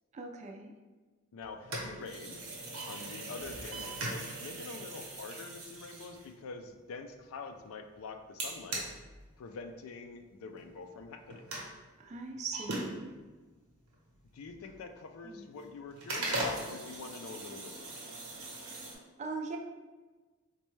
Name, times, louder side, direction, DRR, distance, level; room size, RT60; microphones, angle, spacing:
voice 1, 0.1-0.7 12.0-13.1 15.2-15.4 19.2-19.6, right 4 dB, 30° right, 3 dB, 0.3 m, -40 dB
voice 2, 1.3-2.4 2.9-8.9 9.4-11.4 14.3-18.0, left 4 dB, 75° left, 6 dB, 0.4 m, -45 dB
sound 1, 1.4-6.8 8.4-9.8 10.1-10.2 10.6-10.7 11.0-11.7 12.5-13.5 13.9-15.1 15.5-15.6 15.9-18.9, right 2 dB, 85° right, 0.9 m, -40 dB
4.1 x 2.2 x 3.1 m, 1.3 s
head